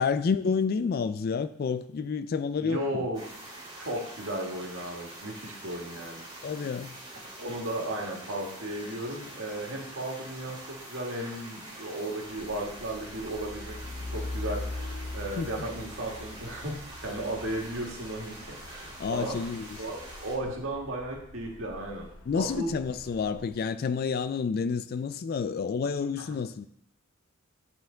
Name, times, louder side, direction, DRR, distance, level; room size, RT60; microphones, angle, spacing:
voice 1, 0.0-3.1 6.4-7.0 15.4-15.5 19.0-19.8 22.3-26.7, left 5 dB, 45° left, 0.3 m, -29 dB
voice 2, 2.6-3.2 3.8-6.2 7.4-10.6 10.9-13.8 14.1-16.8 17.0-18.4 18.7-19.4 19.8-22.1 22.3-22.7 26.3-26.4, right 1 dB, 70° right, 1.8 m, -35 dB
sound 1, 3.1-20.3, right 1 dB, 20° right, 3.0 m, -45 dB
Truck, 12.3-23.6, left 2 dB, 70° left, 0.9 m, -42 dB
10.5 x 4.3 x 3.8 m
head